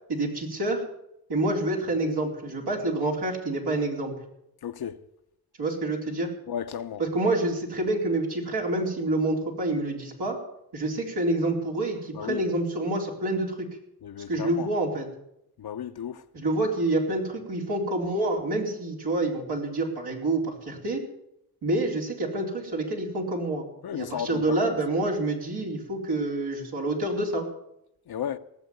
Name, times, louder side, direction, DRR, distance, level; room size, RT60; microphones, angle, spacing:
voice 1, 0.1-0.8 1.3-4.1 5.6-6.3 7.0-10.4 10.7-13.7 14.3-15.1 16.3-21.0 21.6-27.4, right 2 dB, 75° right, 4.2 m, -27 dB
voice 2, 4.6-5.0 6.5-7.0 12.1-12.4 14.0-14.7 15.6-16.2 23.8-24.7 28.1-28.4, left 9 dB, 65° left, 1.0 m, -34 dB
18.0 x 7.7 x 9.3 m
supercardioid pair, 45°, 40 cm